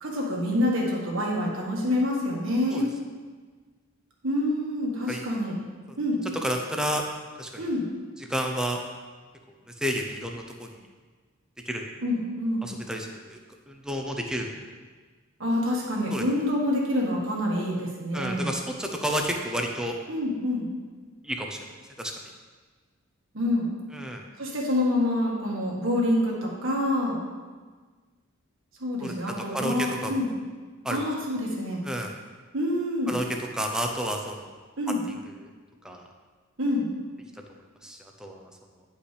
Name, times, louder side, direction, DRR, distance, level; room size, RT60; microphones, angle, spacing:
voice 1, 0.0-2.9 4.2-5.6 6.0-6.2 7.6-7.8 12.0-12.7 15.4-18.5 20.1-20.7 23.3-23.7 24.4-27.2 28.8-30.3 30.9-31.8 32.5-33.1 34.8-35.0 36.6-36.9, left 1 dB, 70° right, -2 dB, 1.7 m, -27 dB
voice 2, 6.4-7.0 7.4-7.6 8.3-8.8 9.8-10.8 11.7-11.8 12.6-13.4 13.7-14.7 16.1-16.2 18.1-20.0 21.2-21.7 22.0-22.1 23.9-24.2 29.0-29.1 29.5-30.1 30.8-31.0 31.8-32.1 33.1-33.2 33.5-34.5 35.8-36.0 37.8-38.4, equal, 5° right, 2 dB, 0.6 m, -30 dB
10.0 x 5.2 x 3.4 m, 1.4 s
head